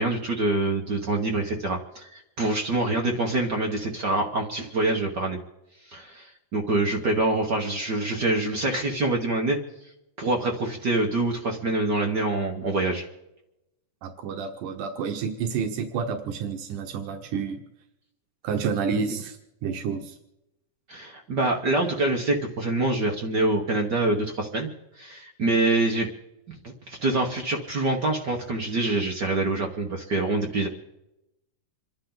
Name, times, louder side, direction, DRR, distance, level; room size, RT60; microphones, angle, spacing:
voice 1, 0.0-5.4 5.8-9.6 10.2-13.1 20.9-24.7 24.9-26.1 26.6-30.7, right 2 dB, 50° right, 1 dB, 1.3 m, -25 dB
voice 2, 14.0-17.6 18.4-19.4 19.6-20.2, right 6 dB, 90° right, 4 dB, 2.7 m, -29 dB
27.5 x 11.5 x 3.9 m, 0.91 s
omnidirectional pair, 3.5 m